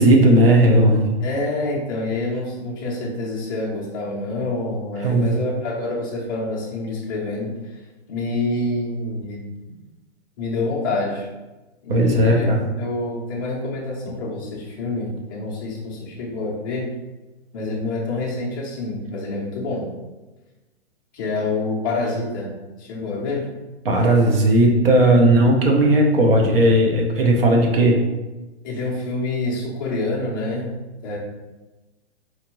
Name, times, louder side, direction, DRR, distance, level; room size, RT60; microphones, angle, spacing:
voice 1, 0.0-1.0 5.0-5.3 11.9-12.6 23.8-28.0, right 1 dB, 55° right, 1 dB, 0.9 m, -16 dB
voice 2, 1.2-7.5 8.1-9.4 10.4-11.3 11.8-16.9 17.5-19.9 21.1-22.5 22.8-23.5 28.6-30.7 31.0-31.2, left 2 dB, 20° left, -5 dB, 0.5 m, -27 dB
4.3 x 2.6 x 3.0 m, 1.1 s
hypercardioid pair, 170°, 35 cm